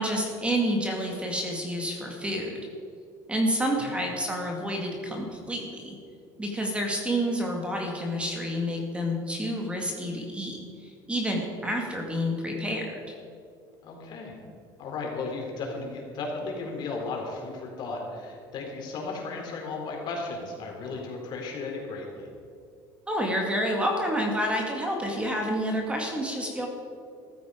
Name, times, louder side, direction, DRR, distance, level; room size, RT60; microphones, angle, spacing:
voice 1, 0.0-2.6 3.3-6.0 6.4-10.6 10.8-13.2 23.1-26.7, equal, 10° right, 1 dB, 2.0 m, -29 dB
voice 2, 13.8-14.4 14.8-22.3, left 3 dB, 50° left, 0 dB, 3.8 m, -35 dB
14.0 x 13.5 x 5.0 m, 2.4 s
cardioid pair, 130°, 9 cm